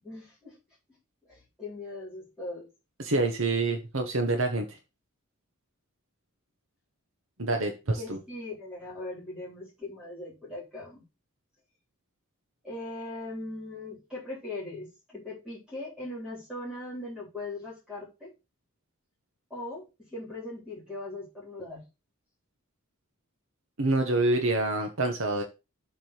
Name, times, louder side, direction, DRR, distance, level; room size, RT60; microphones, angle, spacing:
voice 1, 0.0-0.6 1.2-2.7 8.0-11.0 12.6-18.3 19.5-21.9, left 2 dB, 5° right, -5 dB, 3.8 m, -40 dB
voice 2, 3.0-4.8 7.4-8.2 23.8-25.4, right 2 dB, 65° right, 3 dB, 1.3 m, -27 dB
7.7 x 3.8 x 6.6 m, 0.27 s
head